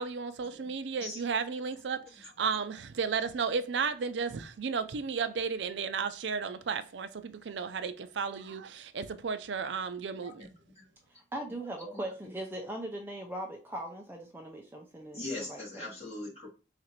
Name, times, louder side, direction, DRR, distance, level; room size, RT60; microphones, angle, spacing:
voice 1, 0.0-10.5, right 5 dB, 85° right, 0.5 m, -33 dB
voice 2, 10.1-10.5 10.8-10.9 11.9-12.0 15.1-16.5, left 2 dB, 35° left, 1.9 m, -41 dB
voice 3, 11.1-15.2 15.5-15.9, right 1 dB, 10° right, 0.5 m, -40 dB
4.0 x 2.5 x 4.3 m
head